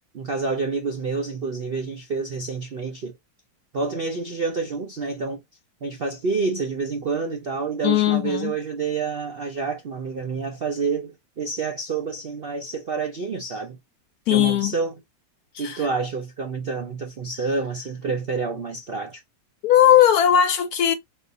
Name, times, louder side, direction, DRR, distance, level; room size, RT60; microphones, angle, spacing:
voice 1, 0.1-3.1 3.7-5.4 5.8-13.8 14.3-15.0 15.6-19.2, right 4 dB, 60° right, 0.6 m, -28 dB
voice 2, 7.8-8.5 14.3-14.7 15.5-15.8 19.6-20.9, left 11 dB, 70° left, 0.9 m, -18 dB
4.1 x 2.6 x 3.7 m
omnidirectional pair, 1.9 m